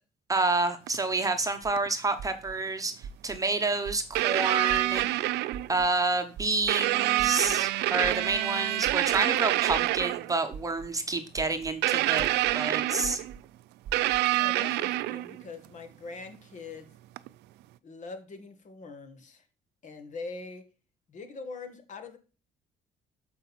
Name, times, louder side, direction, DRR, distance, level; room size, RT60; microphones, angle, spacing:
voice 1, 0.3-5.2 5.7-13.2, right 3 dB, 20° right, 7 dB, 1.0 m, -29 dB
sound 1, 0.9-1.0 1.8-1.9 3.5-3.6 4.1-5.8 6.7-10.3 11.8-13.3 13.9-15.4 17.2-17.3, right 17 dB, 85° right, 0.4 m, -27 dB
sound 2, 1.6-1.7 2.2-2.5 3.0-3.4 3.8-4.2 4.7-5.0 5.5-5.9 6.4-6.7 7.2-7.5 8.0-8.4 8.8-9.2 9.7-10.0 10.5-10.9 11.4-11.7 12.2-12.5 13.0-13.4 13.8-14.2, right 6 dB, 60° right, 0.9 m, -41 dB
voice 2, 14.2-16.9 17.8-19.4 19.8-20.7 21.1-22.2, left 4 dB, 45° left, 7 dB, 1.8 m, -43 dB
7.7 x 5.2 x 4.2 m, 0.33 s
cardioid pair, 110°, 17 cm